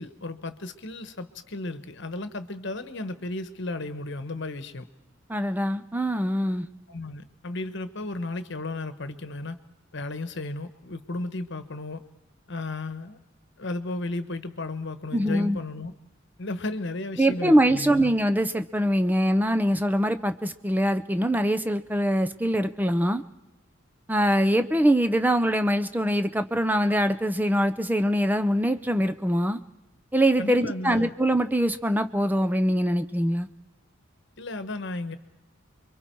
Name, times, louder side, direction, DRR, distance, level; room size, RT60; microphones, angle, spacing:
voice 1, 0.0-4.9 6.9-9.6 9.9-12.1 12.5-13.2 13.6-15.9 16.4-18.1 30.4-31.1 34.4-35.2, left 2 dB, 55° left, 1.3 m, -34 dB
voice 2, 5.3-6.7 15.1-15.6 17.2-23.2 24.1-29.6 30.1-33.5, equal, 10° right, 0.6 m, -23 dB
29.0 x 23.5 x 4.7 m
head